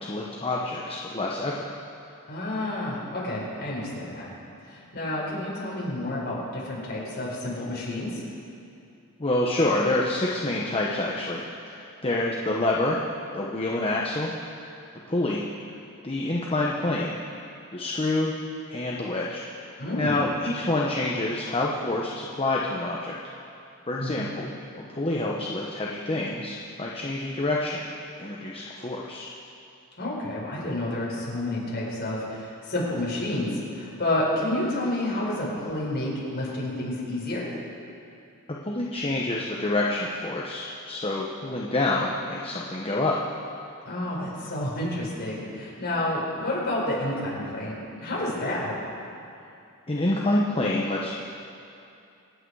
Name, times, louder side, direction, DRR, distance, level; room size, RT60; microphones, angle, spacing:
voice 1, 0.0-1.7 9.2-13.0 13.3-14.3 15.1-15.4 16.0-17.2 17.7-18.3 18.7-23.1 23.9-24.5 24.9-27.8 28.2-29.3 38.6-43.1 49.9-51.1, left 2 dB, 25° left, -3 dB, 1.0 m, -27 dB
voice 2, 2.3-4.2 4.7-8.2 19.8-20.2 24.0-24.2 30.0-37.5 43.8-48.7, left 1 dB, 45° left, -5 dB, 4.6 m, -30 dB
26.0 x 8.8 x 4.8 m, 2.6 s
head